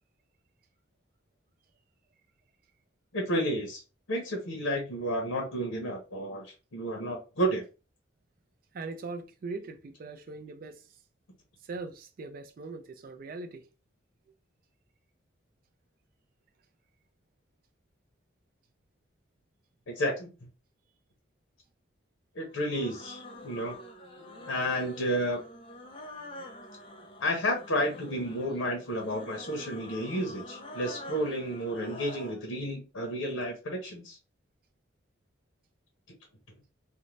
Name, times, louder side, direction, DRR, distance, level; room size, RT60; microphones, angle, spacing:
voice 1, 3.1-3.8 4.1-7.6 19.9-20.3 22.3-23.7 24.5-25.4 27.2-34.2, equal, 85° left, 0.8 m, -31 dB
voice 2, 8.7-10.9 11.6-13.6, right 3 dB, 45° right, 0.3 m, -40 dB
sound 1, 22.5-32.4, left 1 dB, 25° left, 0.4 m, -46 dB
2.6 x 2.1 x 3.1 m
head